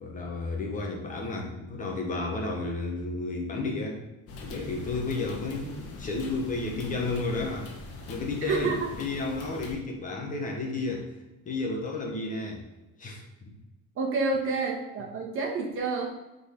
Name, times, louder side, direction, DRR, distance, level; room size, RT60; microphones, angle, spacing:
voice 1, 0.0-4.0 4.4-7.7 8.1-11.1 11.4-12.6 13.0-13.5, left 3 dB, 25° left, 1 dB, 1.1 m, -32 dB
sound 1, 4.3-9.7, left 2 dB, 50° left, 1.4 m, -42 dB
voice 2, 8.5-8.9 13.9-16.1, right 3 dB, 45° right, 1 dB, 1.4 m, -29 dB
6.9 x 4.0 x 5.8 m, 1.0 s
cardioid pair, 170°, 31 cm